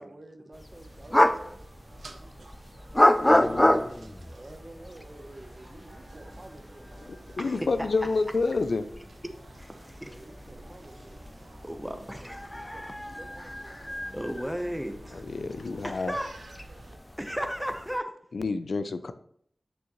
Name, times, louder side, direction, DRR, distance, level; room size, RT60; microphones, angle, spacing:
voice 1, 0.0-1.6 1.9-2.6 4.3-7.6 10.0-11.6 11.9-14.1, right 2 dB, 40° right, 6 dB, 0.8 m, -51 dB
sound 1, 0.5-18.0, left 1 dB, 15° left, 0.4 m, -30 dB
sound 2, 0.7-17.0, right 3 dB, 85° right, 0.7 m, -52 dB
voice 2, 3.3-3.9 7.1-8.9 15.1-16.1 18.3-19.1, left 3 dB, 80° left, 11 dB, 0.4 m, -29 dB
voice 3, 9.5-10.1 11.6-12.4 14.1-15.2 15.8-16.3 17.2-18.1, equal, ahead, 6 dB, 0.9 m, -34 dB
6.3 x 6.2 x 3.1 m, 0.66 s
wide cardioid pair, 75°, 0 cm